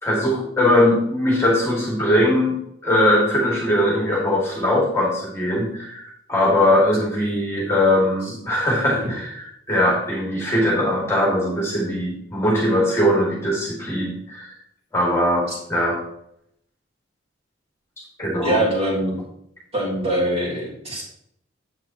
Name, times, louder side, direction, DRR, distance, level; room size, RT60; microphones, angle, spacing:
voice 1, 0.0-2.6 2.8-14.5 14.9-16.0 18.2-18.6, left 1 dB, 15° left, -3 dB, 2.0 m, -20 dB
voice 2, 18.4-19.2 19.7-21.0, right 1 dB, 30° right, -5 dB, 3.0 m, -23 dB
9.6 x 8.0 x 2.9 m, 0.71 s
head